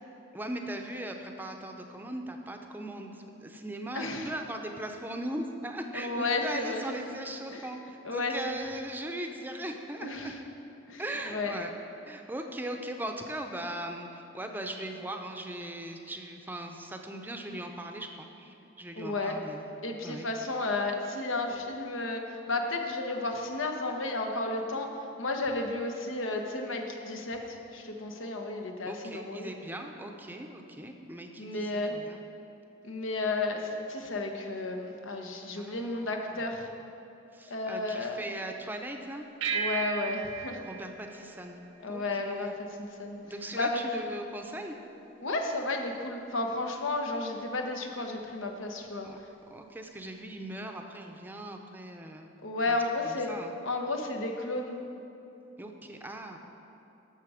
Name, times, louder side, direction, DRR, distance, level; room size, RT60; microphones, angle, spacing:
voice 1, 0.3-10.3 11.0-11.7 12.1-19.7 20.0-20.3 28.9-32.2 35.6-36.4 37.3-39.2 40.6-41.6 41.9-42.5 43.2-44.8 49.0-49.2 49.5-52.3 52.7-52.8 53.0-53.5 55.6-56.4, right 1 dB, 10° right, 4 dB, 0.6 m, -39 dB
voice 2, 3.9-4.3 5.9-7.1 7.5-7.7 8.0-8.6 10.0-10.4 10.9-11.6 19.0-19.4 19.8-24.9 25.2-29.5 31.4-32.0 32.8-36.7 37.5-38.2 39.5-40.6 41.8-42.5 42.8-43.2 43.5-44.0 45.2-49.1 52.4-53.3 53.6-54.8, left 2 dB, 90° left, 3 dB, 1.1 m, -33 dB
sound 1, 39.4-42.2, right 6 dB, 80° right, 0.8 m, -35 dB
12.5 x 6.7 x 4.9 m, 2.9 s
head